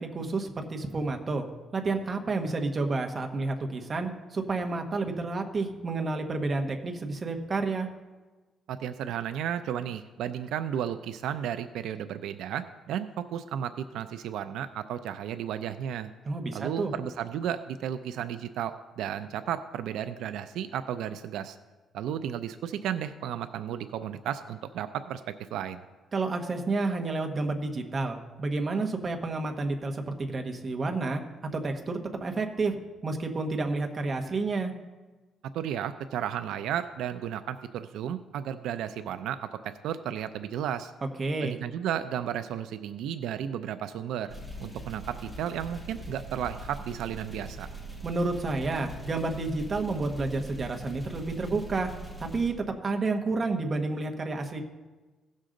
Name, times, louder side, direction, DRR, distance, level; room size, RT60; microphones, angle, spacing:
voice 1, 0.1-1.5 1.7-7.9 16.2-16.9 26.1-31.2 31.5-32.8 33.0-34.7 41.2-41.6 48.0-51.9 52.2-52.5 52.8-54.6, right 3 dB, 30° right, 3 dB, 1.0 m, -30 dB
voice 2, 8.7-16.1 16.5-21.6 21.9-25.8 35.5-40.9 41.4-47.7, right 9 dB, 85° right, 10 dB, 0.4 m, -33 dB
sound 1, 44.3-52.5, right 2 dB, ahead, 1.4 m, -42 dB
16.5 x 6.4 x 3.8 m, 1.2 s
cardioid pair, 145°, 0 cm